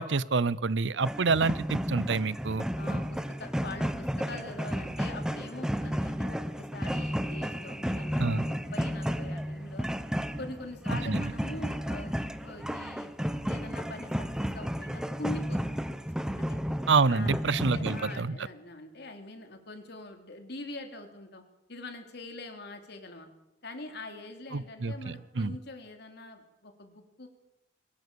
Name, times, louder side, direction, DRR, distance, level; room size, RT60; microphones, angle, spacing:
voice 1, 0.0-2.6 8.2-8.4 11.0-11.3 16.9-18.4 24.5-25.5, right 4 dB, 70° right, 20 dB, 0.7 m, -27 dB
sound 1, 1.0-18.2, equal, 5° right, 1.0 m, -33 dB
voice 2, 2.8-9.9 10.4-13.1 13.4-15.8 16.4-16.6 17.1-17.4 17.7-21.4 21.7-23.3 23.6-27.3, left 2 dB, 65° left, 5 dB, 3.4 m, -43 dB
23.0 x 19.0 x 6.9 m, 0.94 s
head